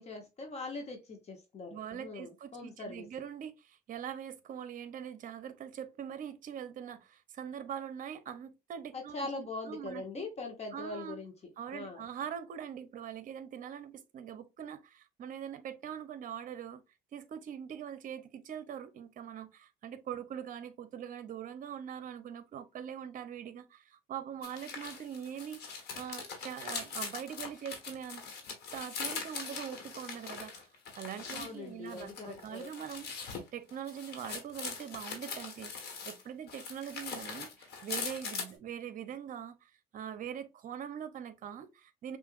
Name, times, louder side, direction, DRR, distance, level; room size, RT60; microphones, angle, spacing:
voice 1, 0.0-3.1 8.9-11.3 11.7-12.0 31.3-32.7, left 3 dB, 40° left, 1.0 m, -42 dB
voice 2, 1.7-10.2 10.7-11.2 11.6-16.8 17.1-28.2 28.7-30.7 30.9-33.2 33.5-42.2, right 9 dB, 50° right, 0.7 m, -43 dB
sound 1, 24.4-31.5 31.9-36.2 36.5-38.5, left 5 dB, 75° left, 1.5 m, -41 dB
5.6 x 2.6 x 2.5 m
cardioid pair, 110°, 17 cm